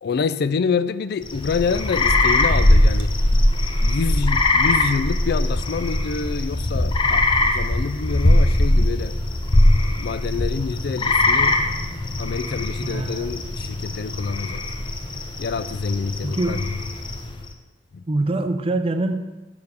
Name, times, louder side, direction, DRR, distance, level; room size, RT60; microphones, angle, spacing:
voice 1, 0.0-3.1 3.8-9.2 10.0-11.6 12.2-14.6 15.4-16.6 17.9-18.0, left 5 dB, 60° left, 0.4 m, -27 dB
sound 1, 1.2-17.4, left 1 dB, 30° left, 0.7 m, -21 dB
voice 2, 12.8-13.3 16.2-16.6 18.1-19.1, right 2 dB, 30° right, 0.5 m, -24 dB
6.9 x 5.2 x 6.8 m
head